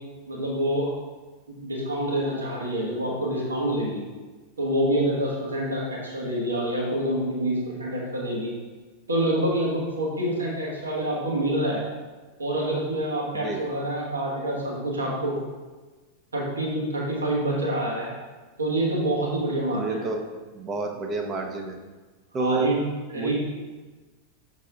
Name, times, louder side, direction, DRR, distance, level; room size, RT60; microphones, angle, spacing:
voice 1, 0.3-0.9 1.5-4.0 4.6-8.5 9.1-11.8 12.4-15.4 16.3-18.1 18.6-20.1 22.4-23.3, right 1 dB, 75° right, -3 dB, 1.4 m, -27 dB
voice 2, 19.7-20.2 20.5-21.8 22.3-22.7 23.2-23.3, right 3 dB, 25° right, 4 dB, 0.7 m, -29 dB
6.5 x 4.0 x 3.6 m, 1.3 s
figure-of-eight pair, 90°, 0 cm